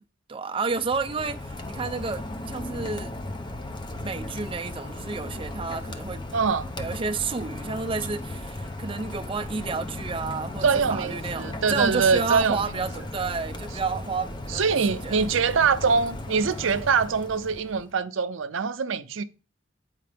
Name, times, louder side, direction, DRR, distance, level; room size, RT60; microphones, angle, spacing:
voice 1, 0.3-3.2 4.0-6.2 6.8-14.7 15.0-15.2, right 4 dB, 25° right, 0.5 m, -31 dB
Rain, 0.7-17.9, left 1 dB, 25° left, 0.6 m, -36 dB
voice 2, 6.3-6.7 10.6-12.9 14.5-19.2, right 5 dB, 75° right, 0.5 m, -24 dB
8.4 x 4.9 x 3.4 m
head